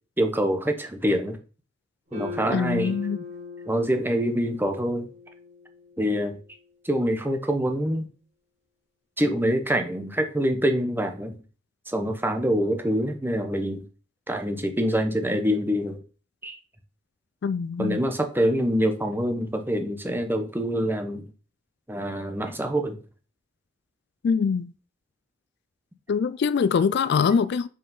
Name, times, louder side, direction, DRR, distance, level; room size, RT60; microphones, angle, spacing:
voice 1, 0.2-1.4 2.1-2.9 3.7-5.1 6.0-6.4 6.8-8.1 9.2-11.4 11.9-13.8 14.3-16.0 16.4-16.6 17.8-21.3 21.9-23.0, equal, 10° right, 1.0 m, -25 dB
sound 1, 2.1-6.4, left 5 dB, 35° right, 2.8 m, -40 dB
voice 2, 2.5-3.2 17.4-18.0 24.2-24.7 26.1-27.7, left 6 dB, 55° left, 0.3 m, -23 dB
5.4 x 5.4 x 5.4 m
head